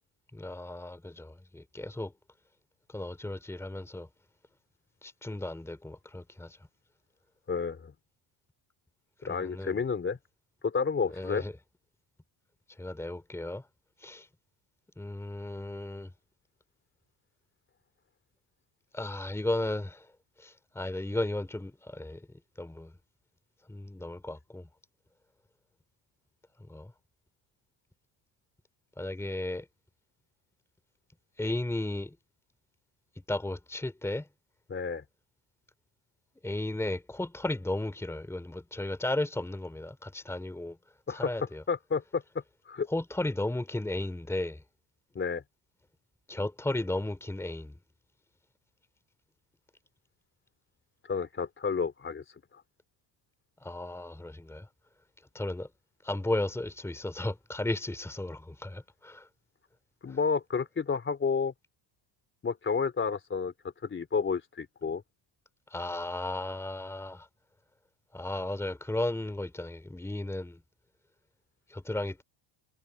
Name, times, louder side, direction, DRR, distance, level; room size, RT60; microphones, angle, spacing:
voice 1, 0.3-2.1 2.9-4.1 5.0-6.6 9.2-9.8 11.2-11.5 12.8-13.6 14.0-14.3 15.0-16.1 18.9-20.1 20.4-22.2 22.6-22.9 23.7-24.7 26.7-26.9 29.0-29.6 31.4-32.1 33.3-34.3 36.4-40.8 41.1-41.6 42.9-44.6 46.3-47.7 53.6-54.7 55.3-55.7 56.0-59.3 60.1-60.2 65.7-67.3 68.1-70.6 71.7-72.2, left 1 dB, 5° left, 3.0 m, -34 dB
voice 2, 7.5-7.9 9.2-10.2 10.6-11.4 34.7-35.0 41.1-41.3 41.7-42.2 42.7-42.9 45.1-45.4 51.1-52.2 60.0-61.5 62.4-63.5 63.8-65.0, left 5 dB, 25° left, 3.4 m, -30 dB
cardioid pair, 140°, 47 cm